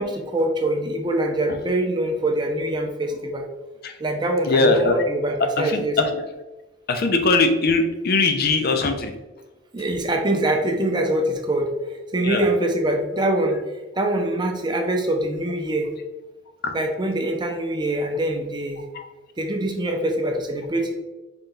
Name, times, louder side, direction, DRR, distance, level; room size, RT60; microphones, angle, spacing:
voice 1, 0.0-3.4 4.0-6.0 9.7-11.7 12.1-13.6 14.0-15.9 16.7-18.8 19.4-20.9, right 1 dB, 25° right, 2 dB, 0.5 m, -24 dB
voice 2, 4.4-5.0 5.4-6.2 6.9-9.1 12.2-12.5 16.6-16.8 18.9-19.1, left 3 dB, 55° left, 6 dB, 0.5 m, -21 dB
3.9 x 2.3 x 3.7 m, 1.1 s
head